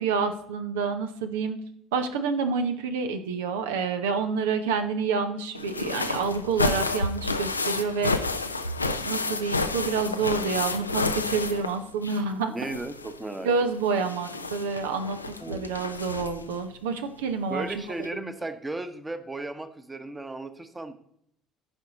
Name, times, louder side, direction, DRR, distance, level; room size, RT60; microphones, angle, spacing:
voice 1, 0.0-1.6 1.9-8.3 8.8-12.5 13.4-15.2 15.5-17.7, right 5 dB, 70° right, 8 dB, 0.8 m, -28 dB
sound 1, 5.5-12.3 12.6-16.5 17.6-17.7 18.0-18.1, left 3 dB, 85° left, 0.4 m, -30 dB
voice 2, 12.5-13.5 15.4-15.7 17.5-20.9, right 2 dB, 15° right, 10 dB, 1.1 m, -35 dB
15.0 x 5.3 x 4.1 m, 0.72 s
figure-of-eight pair, 55°, 0 cm